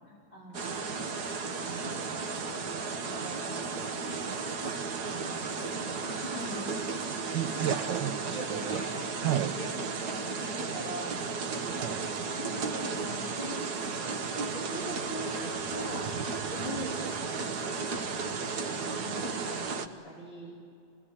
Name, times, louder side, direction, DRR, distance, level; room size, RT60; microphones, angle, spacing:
voice 1, 0.3-0.8 1.6-3.9 5.0-6.7 7.2-7.8 8.3-9.1 9.5-9.7 10.0-11.2 12.0-17.1 17.5-20.6, equal, 30° left, -6 dB, 4.8 m, -43 dB
sound 1, 0.5-19.9, right 4 dB, 65° right, 1.7 m, -34 dB
voice 2, 7.3-8.8 9.2-9.6 11.8-12.1, right 11 dB, 90° right, 7 dB, 1.5 m, -32 dB
27.5 x 21.0 x 9.9 m, 2.5 s
omnidirectional pair, 1.9 m